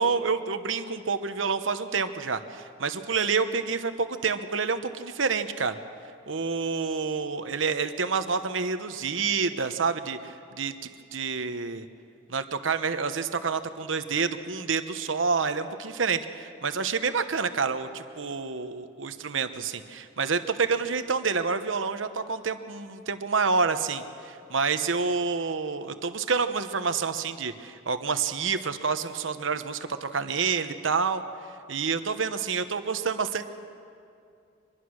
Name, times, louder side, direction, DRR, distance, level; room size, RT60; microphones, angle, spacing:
voice 1, 0.0-5.8 6.3-10.7 11.1-11.9 12.3-31.2 31.7-33.4, right 5 dB, 90° right, 9 dB, 1.0 m, -28 dB
24.5 x 21.0 x 6.4 m, 2.4 s
head